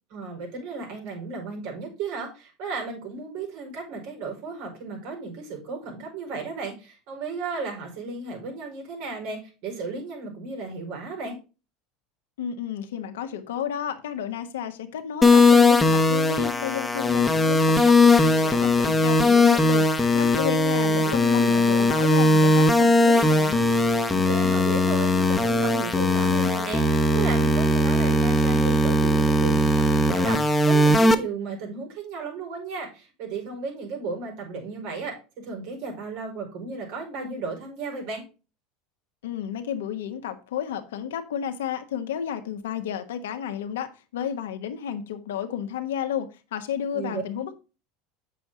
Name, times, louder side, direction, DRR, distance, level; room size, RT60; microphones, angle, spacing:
voice 1, 0.1-11.4 20.7-21.6 24.1-38.2 46.9-47.2, right 4 dB, 70° right, 5.1 m, -34 dB
voice 2, 12.4-19.8 20.1-23.7 39.2-47.5, left 9 dB, 85° left, 1.3 m, -32 dB
sound 1, 15.2-31.1, left 2 dB, 15° left, 1.2 m, -19 dB
7.9 x 6.9 x 3.7 m
hypercardioid pair, 95°, 0 cm